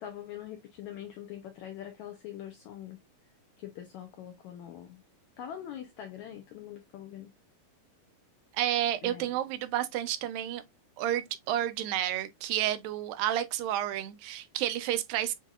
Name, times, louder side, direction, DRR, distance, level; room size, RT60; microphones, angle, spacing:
voice 1, 0.0-3.0 3.6-5.0 5.4-7.3 9.0-9.4, left 10 dB, 85° left, 1.6 m, -43 dB
voice 2, 8.5-10.6 11.0-15.3, right 12 dB, 80° right, 2.3 m, -30 dB
7.4 x 2.7 x 2.4 m
omnidirectional pair, 4.1 m